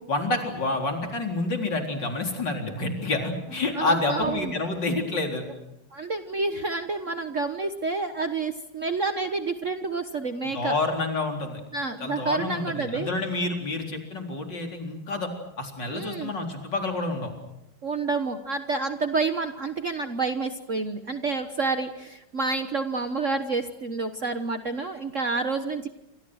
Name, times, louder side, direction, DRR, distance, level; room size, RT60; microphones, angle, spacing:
voice 1, 0.1-5.4 10.5-11.6 12.0-15.3 15.6-17.3, left 2 dB, 55° left, 3 dB, 4.7 m, -28 dB
voice 2, 3.7-4.5 5.9-10.7 11.7-13.1 15.9-16.3 17.8-25.9, right 3 dB, 40° right, 8 dB, 1.3 m, -29 dB
29.0 x 26.5 x 6.4 m, 0.88 s
omnidirectional pair, 2.3 m